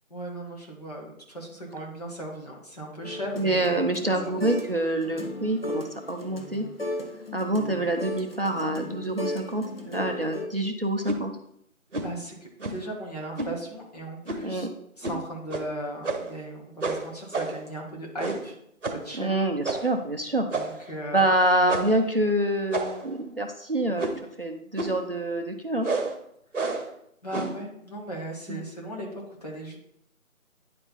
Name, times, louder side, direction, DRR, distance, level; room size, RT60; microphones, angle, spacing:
voice 1, 0.1-4.5 11.9-14.7 15.0-18.6 18.9-19.4 20.5-21.3 27.2-29.8, right 1 dB, 30° left, -3 dB, 1.5 m, -37 dB
sound 1, 3.0-4.8 5.0-10.5, left 1 dB, 45° left, 1.0 m, -36 dB
voice 2, 3.4-6.7 7.3-11.3 14.4-14.7 19.2-20.5 20.8-25.9 28.5-28.6, right 1 dB, 45° right, 3 dB, 0.6 m, -26 dB
sound 2, 11.0-11.2 11.9-12.2 12.6-12.9 13.4-13.6 14.2-14.5 15.0-15.2 15.5-15.6 16.0-16.4 16.8-17.7 18.2-18.5 18.8-19.1 19.6-20.0 20.5-20.9 21.7-22.0 22.7-23.1 24.0-24.3 24.8-25.0 25.8-26.2 26.5-26.9 27.3-27.6, right 3 dB, 60° right, 1.3 m, -30 dB
9.9 x 4.4 x 4.1 m, 0.74 s
figure-of-eight pair, 170°, 42 cm